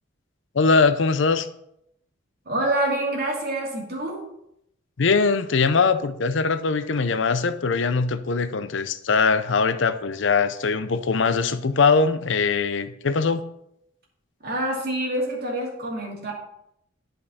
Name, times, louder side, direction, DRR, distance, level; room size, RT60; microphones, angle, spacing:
voice 1, 0.5-1.5 5.0-13.4, left 4 dB, 70° left, 11 dB, 0.6 m, -21 dB
voice 2, 2.5-4.2 14.4-16.3, right 1 dB, 50° right, -2 dB, 2.5 m, -26 dB
10.5 x 5.3 x 4.2 m, 0.77 s
head